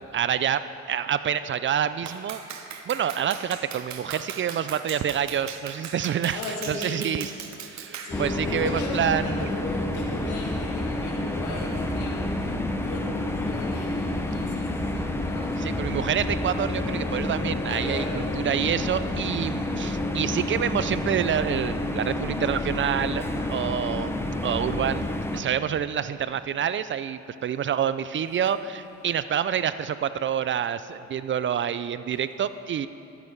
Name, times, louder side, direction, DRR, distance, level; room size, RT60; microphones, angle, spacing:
voice 1, 0.1-2.4 2.9-6.4 6.7-7.3 7.6-9.5 15.6-23.2 23.5-24.2 24.4-25.1 25.3-32.9, right 9 dB, 40° right, 13 dB, 0.4 m, -27 dB
Clapping, 2.1-8.2, right 7 dB, 65° right, 0.9 m, -38 dB
voice 2, 6.3-7.3 7.7-16.1 17.7-18.2 28.4-28.8, left 2 dB, 85° left, -2 dB, 2.0 m, -37 dB
sound 1, 8.1-25.4, left 1 dB, 10° left, 0.7 m, -29 dB
Wind instrument woodwind instrument, 16.3-21.3, left 6 dB, 55° left, 1.5 m, -44 dB
13.0 x 7.8 x 4.6 m, 2.8 s
cardioid pair, 90°, 30 cm